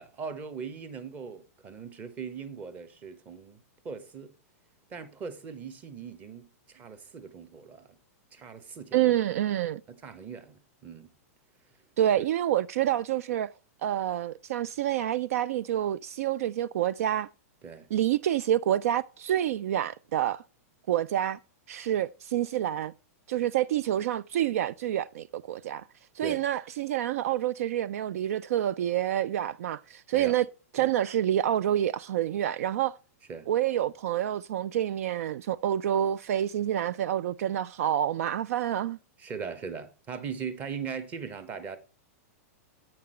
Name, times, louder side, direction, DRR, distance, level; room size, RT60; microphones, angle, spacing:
voice 1, 0.0-4.3 4.9-7.9 8.3-9.2 9.9-11.1 12.2-12.3 17.6-17.9 26.2-26.4 30.1-30.4 30.8-30.9 33.3-33.5 39.2-41.8, right 6 dB, 20° right, 0.9 m, -40 dB
voice 2, 8.9-9.8 12.0-13.5 13.8-17.3 17.9-20.4 20.9-21.4 21.7-22.9 23.3-25.8 26.2-30.5 30.7-33.0 33.5-39.0, right 11 dB, 65° right, 0.3 m, -28 dB
8.6 x 5.9 x 4.3 m
supercardioid pair, 160°, 8 cm